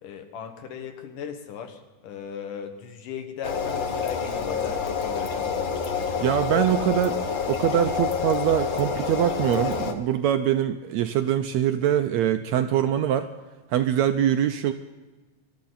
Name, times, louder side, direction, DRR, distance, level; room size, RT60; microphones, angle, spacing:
voice 1, 0.0-5.7 6.5-6.8, left 7 dB, 80° left, 6 dB, 3.1 m, -37 dB
sound 1, 3.4-9.9, left 6 dB, 55° left, 1.3 m, -28 dB
voice 2, 6.2-7.2 7.5-13.3 13.7-14.7, right 10 dB, 75° right, 8 dB, 1.7 m, -23 dB
25.5 x 13.0 x 4.1 m, 1.2 s
omnidirectional pair, 3.7 m